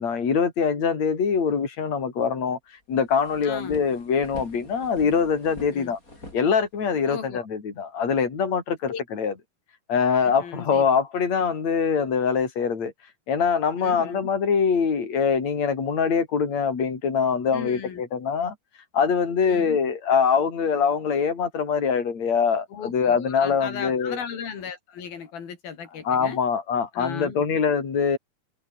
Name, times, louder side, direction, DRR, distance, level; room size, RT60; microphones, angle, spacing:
voice 1, 0.0-2.6 2.9-6.0 6.3-9.3 9.9-12.9 13.3-18.6 18.9-24.2 26.0-28.2, left 6 dB, 50° left, 5.5 m, -23 dB
sound 1, 2.5-2.6 2.9-7.1, left 1 dB, 20° left, 8.3 m, -45 dB
voice 2, 3.4-3.8 5.7-6.0 7.1-7.5 8.9-9.0 10.2-10.9 13.8-14.3 17.5-18.0 19.4-19.8 22.7-26.4 26.9-27.5, left 7 dB, 85° left, 5.3 m, -36 dB
omnidirectional pair, 4.1 m